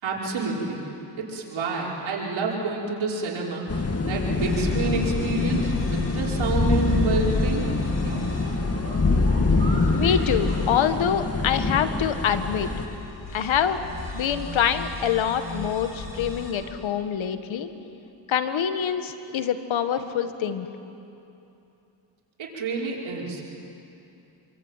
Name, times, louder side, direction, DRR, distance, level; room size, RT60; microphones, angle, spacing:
voice 1, 0.0-0.8 1.2-7.7 8.0-8.3 22.4-23.5, right 3 dB, 85° right, -3 dB, 5.4 m, -28 dB
sound 1, 3.7-12.9, left 3 dB, 30° left, 2.4 m, -24 dB
sound 2, 4.3-16.5, left 2 dB, 65° left, 7.7 m, -37 dB
sound 3, 6.3-11.8, right 2 dB, 25° right, 6.9 m, -42 dB
voice 2, 10.0-12.7 13.3-13.8 14.1-17.7 18.3-20.7, left 8 dB, 85° left, 9 dB, 1.7 m, -25 dB
26.5 x 24.0 x 9.1 m, 2.8 s
cardioid pair, 70°, 46 cm